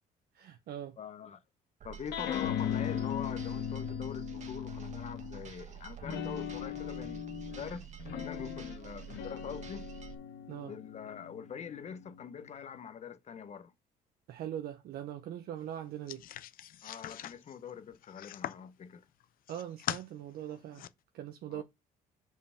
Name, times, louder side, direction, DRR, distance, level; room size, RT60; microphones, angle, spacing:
voice 1, 0.3-1.0 10.5-10.7 14.3-16.2 19.5-20.9 21.1-21.6, right 11 dB, 65° right, 0.8 m, -41 dB
voice 2, 1.0-1.4 1.8-7.9 8.1-9.8 10.6-13.7 16.8-19.0 21.5-21.6, left 7 dB, 40° left, 0.9 m, -44 dB
sound 1, 1.8-10.1, right 10 dB, 45° right, 1.3 m, -48 dB
sound 2, 2.1-5.5 6.0-12.8, left 9 dB, 85° left, 1.4 m, -39 dB
sound 3, 16.1-18.7 19.2-20.0 20.5-20.9, left 12 dB, 60° left, 0.5 m, -41 dB
5.5 x 4.6 x 5.7 m
cardioid pair, 110°, 17 cm